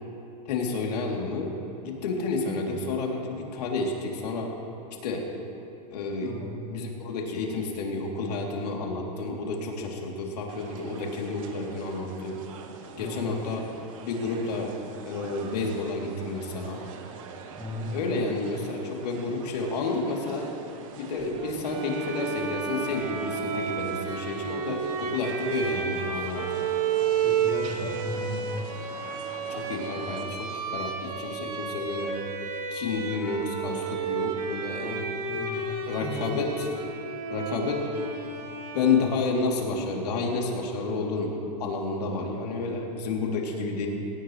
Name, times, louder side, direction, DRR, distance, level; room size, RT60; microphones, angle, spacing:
voice 1, 0.5-1.6 1.8-4.5 5.0-5.2 5.9-6.4 6.7-12.4 13.0-13.6 14.0-14.7 15.0-16.8 17.9-20.5 20.9-26.4 29.5-32.1 32.7-35.1 35.8-36.7 37.3-37.9 38.3-38.4 38.7-41.3 41.6-43.9, left 3 dB, 90° left, -1 dB, 3.2 m, -30 dB
voice 2, 6.2-6.5 13.0-13.2 17.6-18.2 27.2-28.4 35.3-35.6 36.0-36.2, equal, 15° left, -5 dB, 2.9 m, -35 dB
sound 1, 10.5-30.2, right 5 dB, 55° right, 1.6 m, -45 dB
Bowed string instrument, 21.6-39.5, right 6 dB, 85° right, 2.3 m, -32 dB
21.0 x 18.0 x 3.3 m, 2.9 s
supercardioid pair, 170°, 20 cm